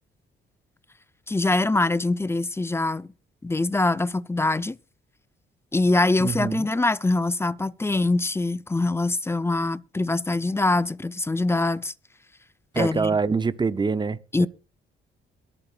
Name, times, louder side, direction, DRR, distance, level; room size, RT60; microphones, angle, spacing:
voice 1, 1.3-3.1 3.4-4.8 5.7-11.9 12.8-13.1 14.3-14.5, left 2 dB, 10° left, 0.5 m, -23 dB
voice 2, 6.2-6.7 12.7-14.5, right 4 dB, 20° right, 0.8 m, -25 dB
22.5 x 8.5 x 2.5 m
cardioid pair, 90°, 20 cm